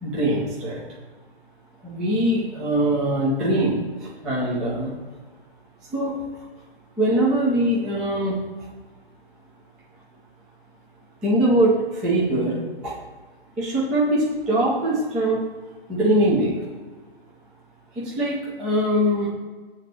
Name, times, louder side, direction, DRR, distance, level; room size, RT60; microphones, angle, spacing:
voice 1, 0.0-0.8 1.8-4.9 5.9-6.2 7.0-8.5 11.2-12.9 13.6-15.5 15.9-16.5 18.0-19.3, right 1 dB, ahead, -7 dB, 0.3 m, -22 dB
7.2 x 4.0 x 6.6 m, 1.4 s
figure-of-eight pair, 130°, 31 cm